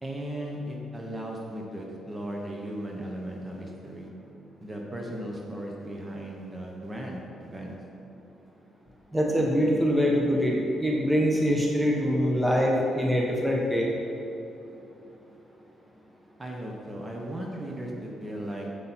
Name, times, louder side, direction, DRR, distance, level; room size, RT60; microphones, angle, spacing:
voice 1, 0.0-4.1 4.6-7.7 16.4-18.7, right 1 dB, 20° right, -1 dB, 1.3 m, -36 dB
voice 2, 9.1-13.9, equal, 5° right, -2 dB, 1.3 m, -24 dB
8.2 x 7.4 x 4.5 m, 2.9 s
cardioid pair, 90°, 0 cm